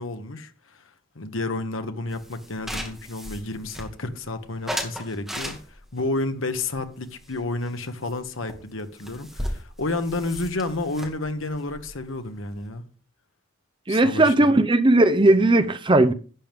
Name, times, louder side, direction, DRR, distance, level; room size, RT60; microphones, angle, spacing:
voice 1, 0.0-12.8 13.9-14.6, left 2 dB, 80° left, 1.3 m, -31 dB
sound 1, 2.1-4.2 4.7-6.0 6.5-7.8 8.1-8.2 8.5-8.6 8.8-12.7, equal, ahead, 2.2 m, -36 dB
voice 2, 13.9-16.1, right 2 dB, 25° right, 0.7 m, -17 dB
11.5 x 8.9 x 3.6 m
head